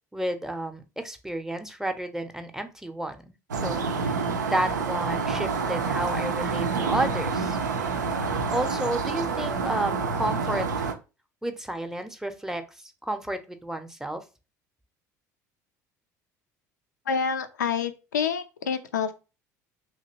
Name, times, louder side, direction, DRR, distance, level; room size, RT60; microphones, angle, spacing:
voice 1, 0.1-3.3 3.6-3.8 4.5-7.6 8.5-10.9 11.4-12.6 13.0-14.2, right 1 dB, 5° right, 8 dB, 0.6 m, -31 dB
sound 1, 3.5-10.9, right 5 dB, 85° right, 0.4 m, -28 dB
voice 2, 17.1-19.1, left 6 dB, 85° left, 8 dB, 0.4 m, -27 dB
2.8 x 2.8 x 2.8 m, 0.30 s
hypercardioid pair, 65°, 9 cm